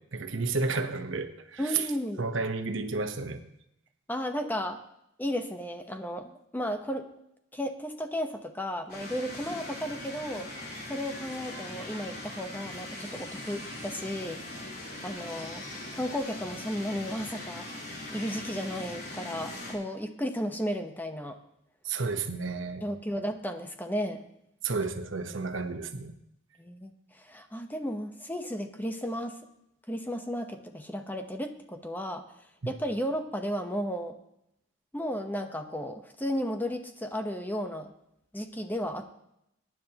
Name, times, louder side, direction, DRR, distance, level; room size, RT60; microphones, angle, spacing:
voice 1, 0.1-1.9 2.2-3.4 21.8-22.9 24.6-26.1 32.6-32.7, right 4 dB, 85° right, 7 dB, 1.1 m, -31 dB
voice 2, 1.6-2.2 4.1-4.8 5.2-7.1 7.5-10.5 10.9-14.4 15.0-15.6 15.9-17.7 18.1-21.4 22.8-24.2 26.6-29.4 29.9-32.2 32.7-34.2 34.9-37.9 38.3-39.1, equal, 10° left, 6 dB, 0.9 m, -34 dB
sound 1, 8.9-19.7, left 1 dB, 50° left, 3.9 m, -41 dB
22.0 x 10.0 x 2.9 m, 0.79 s
head